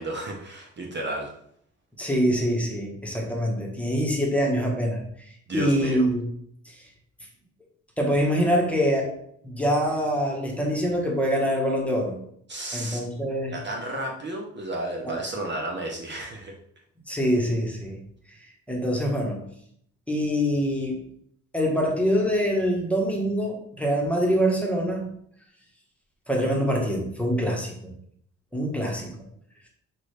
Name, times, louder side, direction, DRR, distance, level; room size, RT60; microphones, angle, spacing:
voice 1, 0.0-1.3 5.5-6.0 12.5-13.0 13.5-16.6, right 1 dB, 35° right, 0 dB, 0.8 m, -32 dB
voice 2, 2.0-6.2 6.6-6.7 8.0-9.1 9.4-12.2 12.7-13.5 17.1-18.0 18.7-19.5 20.1-21.0 21.5-25.1 26.3-27.9 28.5-29.2, equal, 5° left, -1 dB, 1.2 m, -25 dB
6.2 x 2.5 x 3.3 m, 0.68 s
cardioid pair, 90°, 30 cm